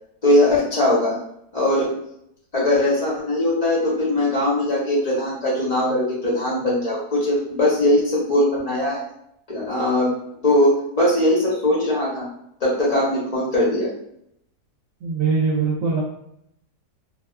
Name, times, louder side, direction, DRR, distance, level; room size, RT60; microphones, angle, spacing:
voice 1, 0.2-1.2 1.5-1.9 2.5-9.0 9.5-10.1 10.4-12.3 12.6-13.9, left 1 dB, 65° left, -6 dB, 0.3 m, -20 dB
voice 2, 15.0-16.0, right 4 dB, 65° right, -4 dB, 0.9 m, -21 dB
2.6 x 2.3 x 2.3 m, 0.75 s
omnidirectional pair, 1.7 m